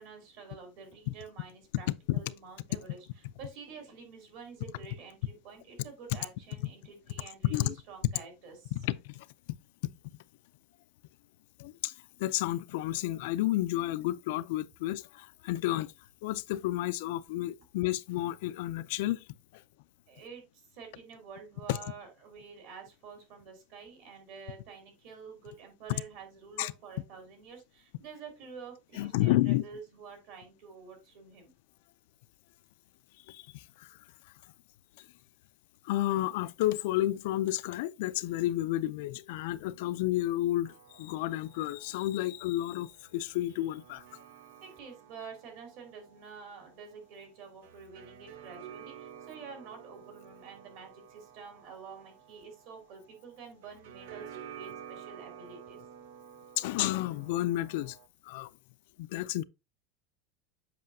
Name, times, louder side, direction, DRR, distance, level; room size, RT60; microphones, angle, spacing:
voice 1, 0.0-1.9 2.1-3.0 3.4-8.7 20.1-31.5 44.6-55.8, right 5 dB, 55° right, 2.8 m, -48 dB
voice 2, 7.4-7.7 8.7-9.3 11.6-11.9 12.2-15.9 16.2-19.2 19.5-19.6 21.7-21.8 26.6-26.7 28.9-29.6 33.3-33.9 35.8-44.0 56.6-58.0 58.2-58.5 59.0-59.4, left 15 dB, 65° left, 0.4 m, -31 dB
sound 1, 40.7-58.1, right 9 dB, 80° right, 0.8 m, -51 dB
7.6 x 5.5 x 2.7 m
supercardioid pair, 175°, 0 cm